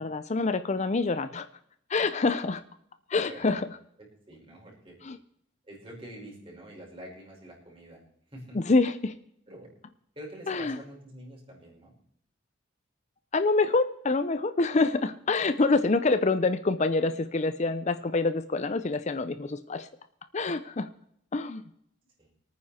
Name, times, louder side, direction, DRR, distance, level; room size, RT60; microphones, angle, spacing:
voice 1, 0.0-1.5 1.9-2.6 3.1-3.7 5.0-5.2 8.5-9.1 10.5-10.8 13.3-19.9 20.3-20.9 21.3-21.6, left 3 dB, 35° left, 12 dB, 0.5 m, -26 dB
voice 2, 3.2-3.6 4.0-5.0 5.7-8.0 8.3-8.6 9.5-9.7 10.2-11.9 15.0-15.1 22.2-22.3, right 1 dB, 30° right, -3 dB, 5.3 m, -46 dB
24.0 x 9.4 x 4.3 m, 0.72 s
head